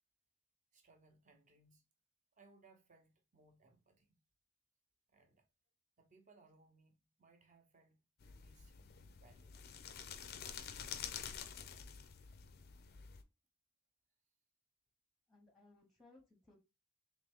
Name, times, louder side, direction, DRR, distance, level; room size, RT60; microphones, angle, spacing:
voice 1, 0.7-1.9 2.3-4.2 5.1-5.5 6.0-9.6, right 3 dB, 35° right, 0.8 m, -68 dB
sound 1, 8.2-13.2, left 7 dB, 45° left, 0.4 m, -49 dB
voice 2, 15.3-16.6, left 2 dB, ahead, 0.8 m, -64 dB
3.6 x 3.0 x 3.5 m
head